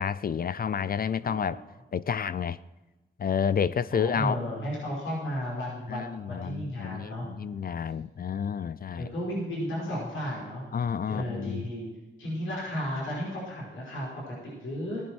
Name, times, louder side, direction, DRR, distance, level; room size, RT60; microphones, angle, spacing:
voice 1, 0.0-1.6 1.9-2.6 3.2-4.4 5.9-9.1 10.7-11.7, left 7 dB, 50° left, 17 dB, 0.5 m, -30 dB
voice 2, 1.2-1.7 3.9-7.3 8.9-10.6 11.1-11.9 12.2-15.0, equal, 90° left, -5 dB, 5.4 m, -34 dB
16.0 x 10.5 x 4.6 m, 1.2 s
cardioid pair, 65°, 20 cm